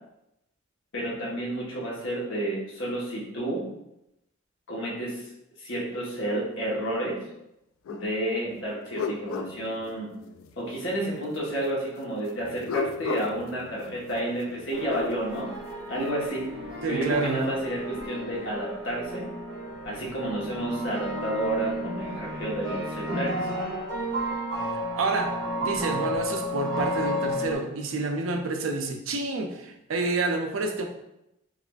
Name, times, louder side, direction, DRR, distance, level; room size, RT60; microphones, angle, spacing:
voice 1, 0.9-3.6 4.7-5.2 5.6-7.2 7.9-10.1 10.6-15.5 15.9-16.5 16.9-19.2 19.8-23.5, right 1 dB, 65° left, -4 dB, 1.1 m, -30 dB
sound 1, 7.9-8.1 8.5-10.5 12.4-15.1 16.8-17.7, left 5 dB, 80° left, 0.3 m, -36 dB
sound 2, 14.7-27.5, equal, 60° right, 1.2 m, -33 dB
voice 2, 16.8-17.4 25.0-30.9, right 3 dB, 80° right, 5 dB, 0.5 m, -28 dB
4.7 x 2.4 x 2.3 m, 0.86 s
head